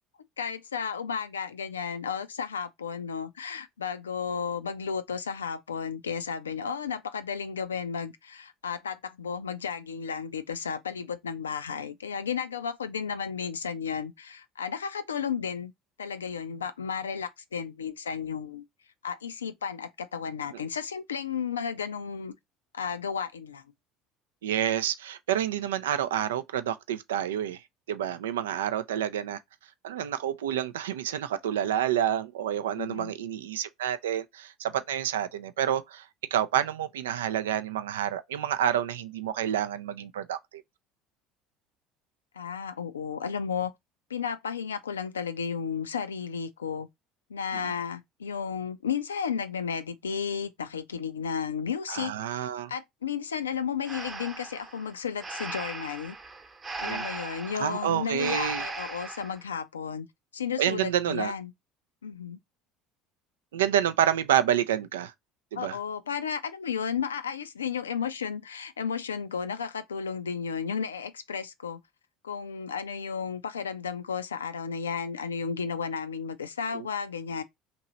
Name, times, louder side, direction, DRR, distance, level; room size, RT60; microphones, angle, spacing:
voice 1, 0.4-15.7 16.0-18.6 19.0-22.3 22.7-23.7 32.8-33.1 42.3-43.7 44.1-46.9 47.3-56.2 56.8-60.1 60.3-61.5 62.0-62.4 65.6-71.8 72.2-77.4, left 6 dB, 90° left, 0.4 m, -33 dB
voice 2, 24.4-27.6 27.9-29.4 29.8-40.6 47.5-47.7 51.9-52.7 56.8-57.0 57.6-58.6 60.6-61.3 63.5-65.1 65.5-65.8 76.7-76.9, right 10 dB, 80° right, 0.3 m, -28 dB
Breathing, 53.8-59.4, right 3 dB, 25° right, 0.9 m, -38 dB
3.1 x 2.9 x 3.8 m
hypercardioid pair, 70°, 0 cm